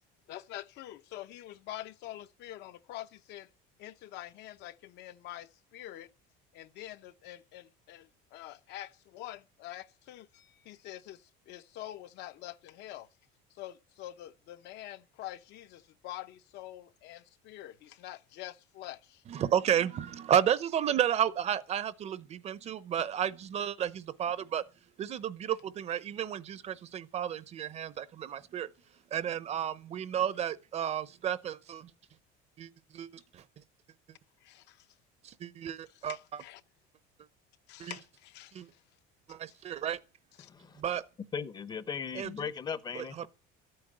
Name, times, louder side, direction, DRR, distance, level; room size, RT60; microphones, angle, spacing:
voice 1, 0.3-3.5 3.8-6.1 6.5-13.1 13.6-19.2 34.4-34.9 36.0-36.6 37.7-38.6 40.4-40.5, left 14 dB, 55° left, 0.9 m, -46 dB
voice 2, 19.3-24.6 25.0-28.7 29.1-31.9 32.6-32.7 32.9-33.1 33.3-33.4 35.2-36.4 37.8-37.9 38.5-38.7 39.3-40.0 40.8-41.0 42.1-42.5 42.9-43.3, right 9 dB, 30° right, 0.7 m, -32 dB
voice 3, 40.4-40.8 41.3-43.3, left 6 dB, 20° left, 0.8 m, -38 dB
13.5 x 8.9 x 8.8 m
cardioid pair, 170°, 21 cm